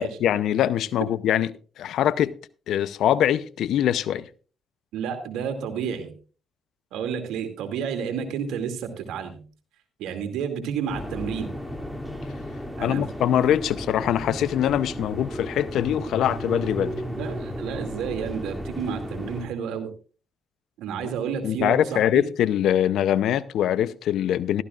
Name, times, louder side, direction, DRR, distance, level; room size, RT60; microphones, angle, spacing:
voice 1, 0.0-2.3 2.7-4.3 12.8-16.9 21.4-24.6, left 10 dB, 75° left, 0.6 m, -23 dB
voice 2, 4.9-6.1 6.9-9.4 10.0-11.5 12.8-13.1 17.2-19.9 20.8-22.2, right 7 dB, 85° right, 2.4 m, -30 dB
sound 1, 10.9-19.5, equal, ahead, 2.7 m, -34 dB
15.5 x 13.5 x 2.4 m
supercardioid pair, 65°, 0 cm